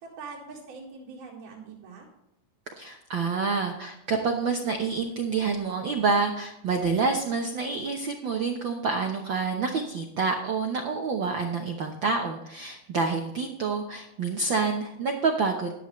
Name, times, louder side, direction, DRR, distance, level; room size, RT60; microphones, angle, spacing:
voice 1, 0.0-2.1, right 4 dB, 90° right, -5 dB, 3.5 m, -43 dB
voice 2, 2.8-15.7, right 4 dB, 75° right, 3 dB, 1.1 m, -28 dB
14.5 x 10.5 x 3.2 m, 0.87 s
omnidirectional pair, 3.5 m